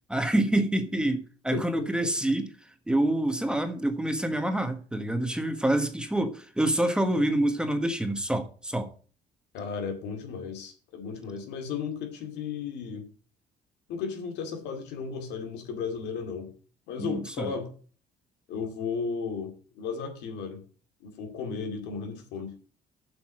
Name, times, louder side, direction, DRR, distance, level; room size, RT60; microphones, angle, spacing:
voice 1, 0.1-2.5 2.9-8.9 17.0-17.5, right 1 dB, 5° right, 1.3 m, -27 dB
voice 2, 1.5-2.1 9.5-13.0 13.9-16.5 16.9-17.7 18.5-20.6 21.0-22.5, left 5 dB, 85° left, 2.4 m, -35 dB
7.6 x 5.9 x 7.5 m
cardioid pair, 110°, 17 cm